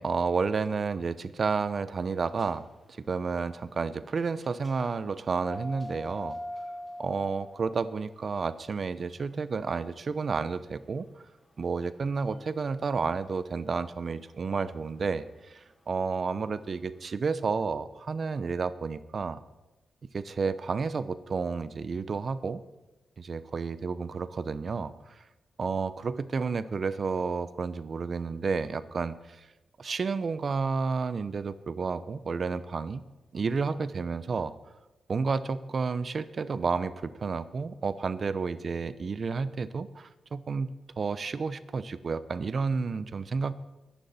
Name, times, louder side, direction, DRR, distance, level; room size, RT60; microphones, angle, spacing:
voice 1, 0.0-2.6 3.1-6.4 7.0-11.0 11.6-19.4 20.1-22.6 23.2-25.2 25.6-29.4 29.8-33.0 33.3-34.5 35.1-40.7 41.0-43.5, right 4 dB, 50° right, 14 dB, 0.8 m, -31 dB
sound 1, 2.3-17.0, left 1 dB, 5° left, 1.1 m, -46 dB
23.5 x 10.5 x 4.3 m, 1.1 s
cardioid pair, 90°, 0 cm